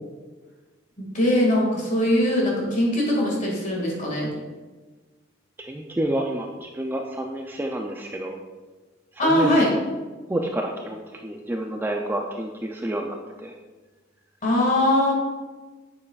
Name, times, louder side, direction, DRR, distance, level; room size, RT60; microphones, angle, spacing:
voice 1, 1.0-4.3 9.2-9.7 14.4-15.1, left 1 dB, 40° left, -2 dB, 1.9 m, -21 dB
voice 2, 5.6-8.4 9.1-9.8 10.3-13.5, right 1 dB, 10° right, 2 dB, 0.3 m, -29 dB
8.5 x 6.8 x 2.4 m, 1.3 s
head